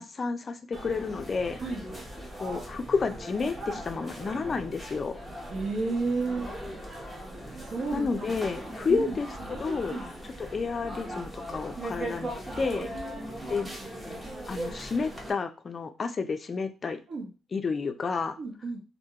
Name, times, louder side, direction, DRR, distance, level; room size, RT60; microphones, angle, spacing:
voice 1, 0.0-1.6 2.4-5.2 7.9-9.3 9.6-10.0 10.4-12.3 12.6-12.9 13.5-13.7 14.5-17.0 17.5-18.4, left 4 dB, 40° left, 8 dB, 0.3 m, -30 dB
sound 1, 0.7-15.3, right 1 dB, 10° right, 0.7 m, -39 dB
voice 2, 5.5-6.5 7.6-8.1 8.6-9.1 9.6-10.1 12.5-13.5 17.1-17.3 18.4-18.8, right 3 dB, 60° right, 0 dB, 0.9 m, -33 dB
2.2 x 2.1 x 2.8 m, 0.32 s
cardioid pair, 90°, 0 cm